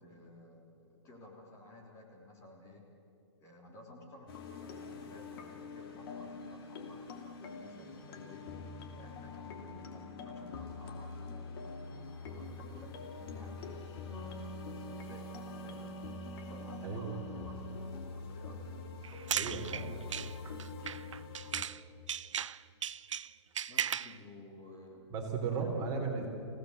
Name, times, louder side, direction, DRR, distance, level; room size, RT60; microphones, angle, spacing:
voice 1, 0.0-2.9 3.4-4.3 4.6-8.4 9.0-14.3 14.9-15.3 15.6-16.0 16.5-18.6 19.4-20.1 23.7-25.1 25.6-26.0, left 2 dB, 20° left, -1 dB, 3.5 m, -54 dB
sound 1, 4.3-21.6, left 4 dB, 50° left, 2.8 m, -45 dB
Wind instrument woodwind instrument, 13.8-18.0, right 5 dB, 70° left, 2.8 m, -47 dB
sound 2, 19.0-21.8 22.1-24.2, right 8 dB, 85° right, 0.6 m, -37 dB
voice 2, 19.3-19.9 25.1-26.3, right 5 dB, 25° right, 1 dB, 3.6 m, -35 dB
27.0 x 17.0 x 8.1 m, 2.9 s
hypercardioid pair, 155°, 15 cm